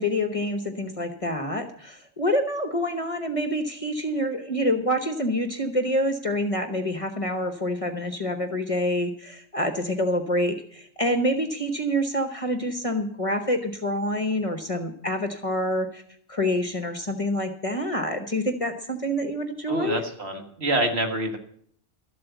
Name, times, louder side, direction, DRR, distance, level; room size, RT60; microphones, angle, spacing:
voice 1, 0.0-16.0 16.3-20.0, equal, 30° left, 7 dB, 1.0 m, -27 dB
voice 2, 19.7-21.4, right 1 dB, 60° right, 4 dB, 1.9 m, -26 dB
13.0 x 7.7 x 8.0 m, 0.62 s
omnidirectional pair, 1.2 m